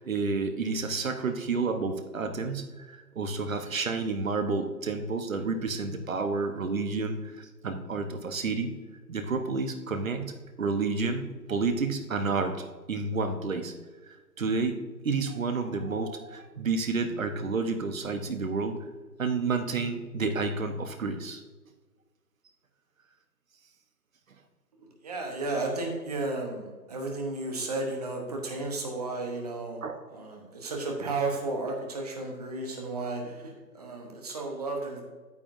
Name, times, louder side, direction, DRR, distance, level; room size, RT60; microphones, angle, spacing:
voice 1, 0.0-8.7 9.1-13.7 14.4-18.8 19.2-21.4 29.8-30.0, right 4 dB, 50° right, 7 dB, 1.0 m, -30 dB
voice 2, 25.0-29.8 30.1-35.0, right 2 dB, 25° right, 1 dB, 1.0 m, -33 dB
8.9 x 8.4 x 2.6 m, 1.3 s
figure-of-eight pair, 155°, 50 cm